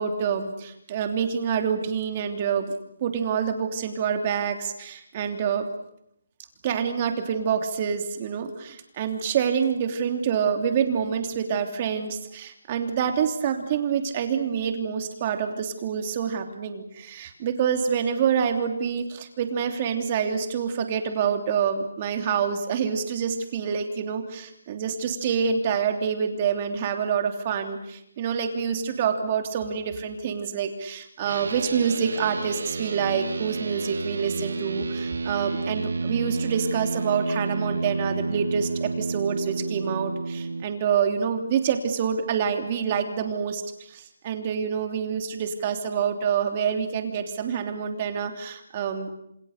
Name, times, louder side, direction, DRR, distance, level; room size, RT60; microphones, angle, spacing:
voice 1, 0.0-2.7 3.0-5.7 6.6-49.1, right 7 dB, 25° right, 6 dB, 3.1 m, -27 dB
sound 1, 31.2-40.6, right 3 dB, 70° right, 1.8 m, -30 dB
28.0 x 27.5 x 6.7 m, 0.78 s
hypercardioid pair, 170°, 0 cm